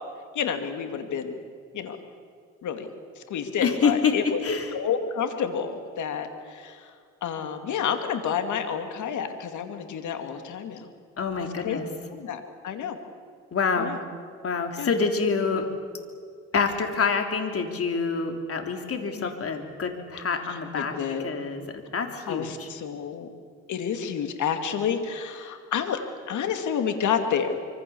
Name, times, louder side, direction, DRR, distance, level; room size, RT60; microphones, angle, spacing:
voice 1, 0.3-1.4 1.7-2.0 2.6-2.9 3.2-4.4 4.7-6.8 7.2-10.9 11.4-11.8 12.1-13.0 13.8-14.0 14.8-14.9 19.1-19.3 20.7-21.3 22.3-23.3 23.7-26.0 26.3-27.6, left 7 dB, 75° left, 7 dB, 2.6 m, -29 dB
voice 2, 3.6-4.8 11.2-11.9 13.5-13.9 14.4-15.7 16.5-22.7, left 5 dB, 50° left, 5 dB, 3.4 m, -27 dB
25.5 x 24.5 x 7.2 m, 2.1 s
cardioid pair, 90°, 30 cm